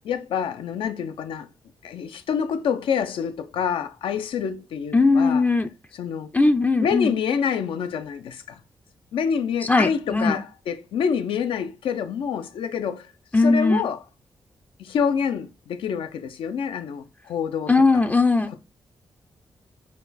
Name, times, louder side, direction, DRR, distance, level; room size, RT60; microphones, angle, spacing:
voice 1, 0.0-1.5 1.8-5.4 5.9-6.3 6.8-8.6 9.1-13.1 13.4-14.0 14.8-18.0, left 7 dB, 85° left, 0.4 m, -27 dB
voice 2, 4.9-5.7 6.3-7.1 9.6-10.4 13.3-13.8 17.7-18.5, left 3 dB, 20° left, 0.3 m, -19 dB
4.1 x 2.3 x 4.0 m
cardioid pair, 70°, 9 cm